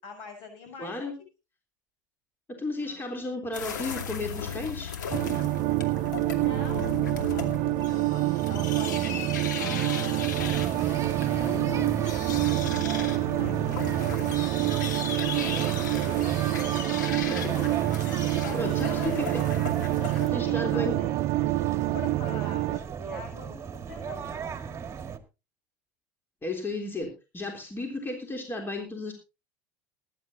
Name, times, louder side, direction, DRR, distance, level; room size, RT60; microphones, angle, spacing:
voice 1, 0.0-1.0 2.8-3.0 6.2-7.6 7.8-14.1 16.6-17.4 18.4-19.1 20.0-21.1 21.9-24.4, left 5 dB, 60° left, 5 dB, 7.4 m, -44 dB
voice 2, 0.8-1.1 2.5-5.0 17.3-17.6 18.5-19.4 20.3-21.0 26.4-29.1, left 2 dB, 20° left, 3 dB, 3.5 m, -33 dB
sound 1, 3.5-20.3, left 7 dB, 85° left, 2.5 m, -36 dB
sound 2, 5.1-22.8, right 18 dB, 55° right, 0.6 m, -27 dB
sound 3, 10.4-25.2, right 6 dB, 30° right, 1.8 m, -37 dB
20.5 x 11.0 x 2.8 m, 0.29 s
hypercardioid pair, 80°, 10 cm